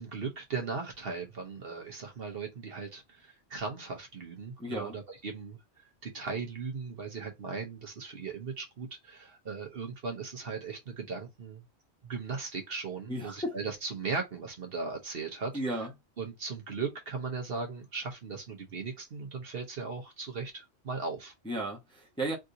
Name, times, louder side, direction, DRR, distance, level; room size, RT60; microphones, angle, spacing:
voice 1, 0.0-11.6 12.0-15.9 16.2-21.3, right 4 dB, 55° right, 1.0 m, -38 dB
voice 2, 4.6-4.9 13.1-13.5 15.5-15.9 21.4-22.4, right 1 dB, 5° left, 0.8 m, -34 dB
3.6 x 2.6 x 2.7 m
omnidirectional pair, 1.3 m